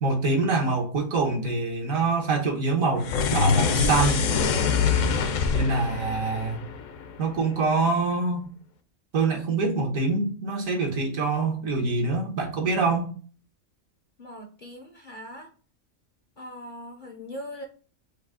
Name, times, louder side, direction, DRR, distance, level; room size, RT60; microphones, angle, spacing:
voice 1, 0.0-4.3 5.5-6.6 7.2-8.5 9.1-13.1, right 3 dB, 75° right, 1.5 m, -25 dB
sound 1, 3.0-7.4, left 5 dB, 70° left, 0.9 m, -24 dB
voice 2, 14.2-15.5 16.4-17.6, equal, 50° left, 0.6 m, -40 dB
4.7 x 2.7 x 3.7 m
omnidirectional pair, 1.4 m